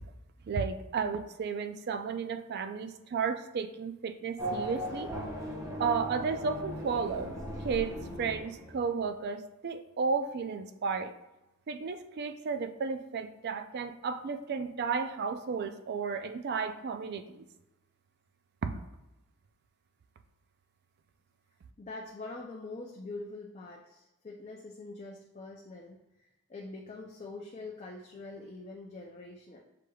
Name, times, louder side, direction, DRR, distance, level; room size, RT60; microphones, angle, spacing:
voice 1, 0.5-5.1 5.8-7.3 7.6-11.1 11.7-17.4 18.6-18.8, right 5 dB, 50° right, 9 dB, 0.3 m, -33 dB
Race car auto racing / Accelerating revving vroom, 4.4-9.1, right 1 dB, 15° right, 0.9 m, -38 dB
voice 2, 21.8-29.6, left 3 dB, 30° left, 0 dB, 0.4 m, -44 dB
6.6 x 3.3 x 2.3 m, 0.94 s
head